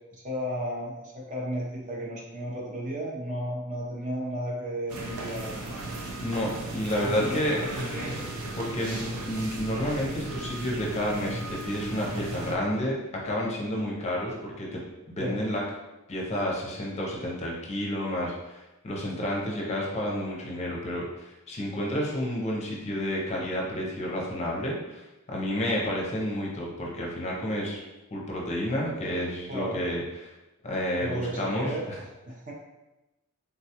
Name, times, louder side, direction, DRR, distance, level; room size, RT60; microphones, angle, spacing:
voice 1, 0.1-5.8 6.8-8.2 9.0-9.2 15.2-15.4 29.5-29.8 31.0-31.9 32.3-32.5, equal, 35° right, -3 dB, 0.6 m, -34 dB
sound 1, 4.9-12.6, right 2 dB, 75° right, 0.5 m, -36 dB
voice 2, 6.2-7.6 8.6-9.0 9.2-12.9 13.2-14.8 15.1-15.6 16.1-27.8 28.1-30.3 30.6-32.0, equal, 30° left, -3 dB, 0.6 m, -30 dB
3.5 x 2.3 x 2.8 m, 1.0 s
head